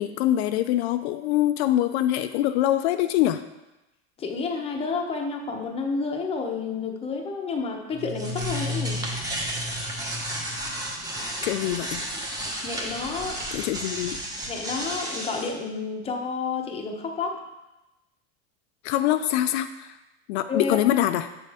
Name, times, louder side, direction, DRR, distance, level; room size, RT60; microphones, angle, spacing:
voice 1, 0.0-3.4 11.4-12.0 13.5-14.2 18.8-20.0 20.3-21.3, left 13 dB, 70° left, 9 dB, 0.5 m, -24 dB
voice 2, 4.2-9.0 12.6-13.4 14.5-17.4 20.5-20.8, left 4 dB, 15° left, 2 dB, 0.8 m, -30 dB
sound 1, 7.9-15.5, equal, 10° right, 1.1 m, -32 dB
8.0 x 6.8 x 3.5 m, 1.0 s
supercardioid pair, 150°, 34 cm